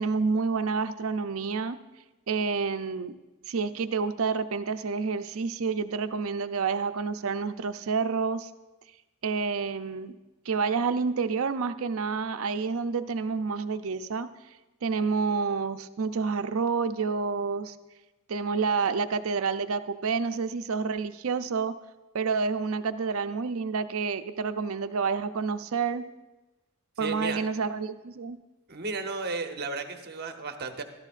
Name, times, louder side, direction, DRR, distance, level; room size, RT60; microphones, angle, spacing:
voice 1, 0.0-1.8 2.3-3.2 3.5-8.5 9.2-10.2 10.5-14.3 14.8-17.7 18.3-21.8 22.1-26.1 27.0-28.4, right 5 dB, 70° right, 10 dB, 0.5 m, -29 dB
voice 2, 27.0-27.4 28.7-30.8, right 4 dB, 50° right, 6 dB, 0.9 m, -33 dB
15.0 x 13.0 x 2.5 m, 1.1 s
head